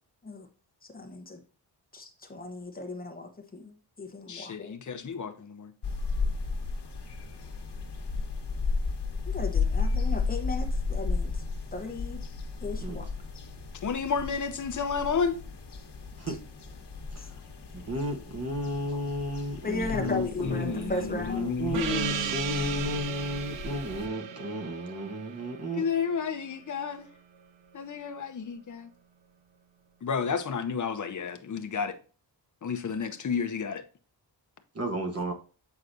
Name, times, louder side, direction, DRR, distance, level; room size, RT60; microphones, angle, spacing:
voice 1, 0.9-1.4 1.9-4.7 9.3-11.4 11.7-12.2 12.6-13.1 17.2-17.3 19.6-21.5, left 2 dB, 20° left, 1.0 m, -36 dB
voice 2, 4.3-5.7 13.8-15.4 19.9-23.1 25.7-27.1 27.7-28.9 30.0-32.0 32.6-33.8, left 6 dB, 45° left, 0.7 m, -31 dB
sound 1, 5.8-24.1, left 4 dB, 65° left, 1.3 m, -34 dB
voice 3, 17.7-25.8 34.7-35.3, right 1 dB, 35° right, 1.1 m, -34 dB
Gong, 21.7-26.8, right 9 dB, 80° right, 0.7 m, -36 dB
8.2 x 4.7 x 2.6 m
wide cardioid pair, 175°, 44 cm